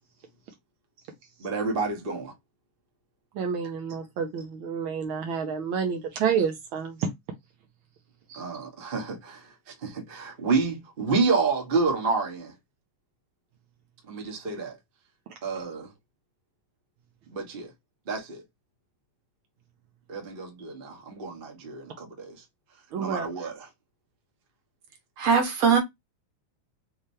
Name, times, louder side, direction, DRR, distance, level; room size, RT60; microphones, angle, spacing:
voice 1, 1.4-2.3 8.3-12.5 14.1-14.7 15.4-15.9 17.3-17.7 18.1-18.4 20.1-22.3 23.0-23.6, right 4 dB, 35° right, 0.8 m, -29 dB
voice 2, 3.3-7.1 8.3-8.4 22.9-23.3, right 6 dB, 75° right, 1.1 m, -29 dB
voice 3, 25.2-25.8, right 5 dB, 60° right, 2.2 m, -20 dB
5.2 x 3.3 x 2.7 m
omnidirectional pair, 3.5 m